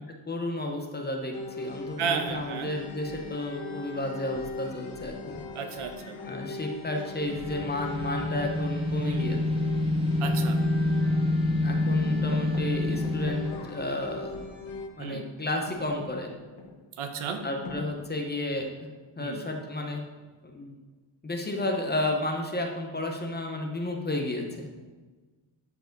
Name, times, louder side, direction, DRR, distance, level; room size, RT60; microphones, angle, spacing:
voice 1, 0.3-5.4 6.3-9.4 11.6-14.4 15.0-16.3 17.4-18.9 19.2-20.0 20.4-20.7 21.2-24.7, left 1 dB, 20° left, 2 dB, 0.9 m, -32 dB
sound 1, 1.3-14.9, left 3 dB, 75° left, 1.2 m, -40 dB
voice 2, 2.0-2.7 5.5-6.2 9.0-9.3 10.2-10.6 15.0-15.2 17.0-17.4 19.2-19.4, right 6 dB, 85° right, 5 dB, 1.1 m, -33 dB
sound 2, 7.2-13.5, left 2 dB, 10° right, 0.9 m, -27 dB
sound 3, 12.3-15.1 15.4-19.0 19.9-20.4, left 2 dB, 55° left, 1.4 m, -46 dB
13.0 x 4.7 x 4.0 m, 1.3 s
wide cardioid pair, 160°, 49 cm